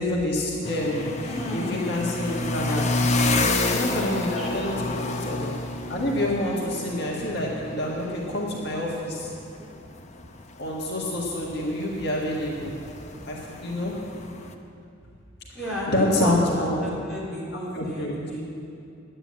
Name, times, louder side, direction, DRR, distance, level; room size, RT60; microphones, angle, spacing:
voice 1, 0.0-2.9 3.7-5.5 5.9-9.3 10.6-12.7 13.3-13.9 15.9-16.8 17.7-18.1, left 1 dB, 55° left, -3 dB, 1.8 m, -27 dB
sound 1, 0.6-14.5, left 2 dB, 35° left, 0.8 m, -30 dB
voice 2, 1.3-1.9 4.4-4.5 15.5-18.4, equal, ahead, -9 dB, 3.7 m, -32 dB
11.0 x 9.0 x 8.7 m, 2.5 s
head